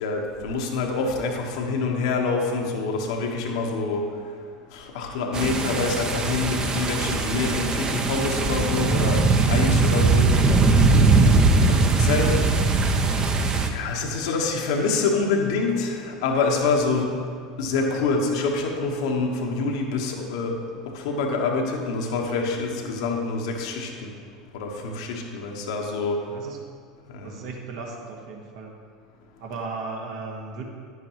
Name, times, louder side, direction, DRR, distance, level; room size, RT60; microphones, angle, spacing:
voice 1, 0.0-4.0 4.7-10.6 11.0-11.3 11.7-12.4 13.2-13.4 13.7-17.2 17.6-20.6 20.9-24.1 24.5-26.2 27.1-27.3, left 4 dB, 65° left, 2 dB, 1.1 m, -26 dB
sound 1, 5.3-13.7, right 3 dB, 25° right, 0.8 m, -20 dB
voice 2, 27.2-28.7 29.4-30.6, right 4 dB, 60° right, 0 dB, 1.6 m, -36 dB
10.0 x 9.2 x 3.0 m, 2.1 s
figure-of-eight pair, 80°, 3 cm